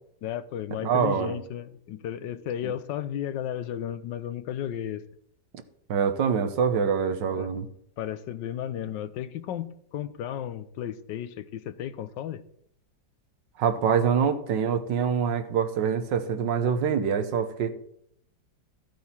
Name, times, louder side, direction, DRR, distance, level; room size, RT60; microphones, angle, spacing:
voice 1, 0.2-5.0 7.3-7.5 8.0-12.4, left 10 dB, 85° left, 1.4 m, -34 dB
voice 2, 0.8-1.4 2.6-2.7 5.9-7.7 13.6-17.7, right 7 dB, 80° right, 1.7 m, -25 dB
14.0 x 8.4 x 4.4 m
omnidirectional pair, 1.9 m